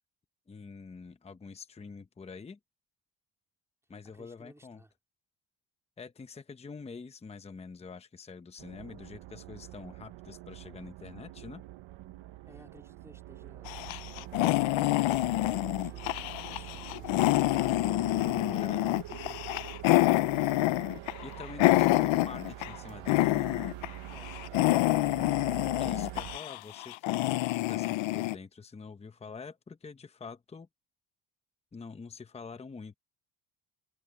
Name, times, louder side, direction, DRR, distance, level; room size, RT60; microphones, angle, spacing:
voice 1, 0.5-2.6 3.9-4.8 6.0-11.6 18.1-18.9 21.2-23.5 25.8-30.7 31.7-33.0, left 5 dB, 15° left, 0.7 m, -46 dB
voice 2, 4.1-4.9 12.5-15.1 15.8-17.2 18.5-20.8 24.1-24.4 24.9-26.0, right 1 dB, 5° right, 3.6 m, -57 dB
sound 1, 8.6-26.4, right 15 dB, 90° right, 1.0 m, -45 dB
sound 2, 13.7-22.8 23.1-23.9 24.2-28.4, left 18 dB, 85° left, 0.7 m, -27 dB
sound 3, 17.3-24.7, right 11 dB, 70° right, 2.0 m, -50 dB
cardioid pair, 160°, 45 cm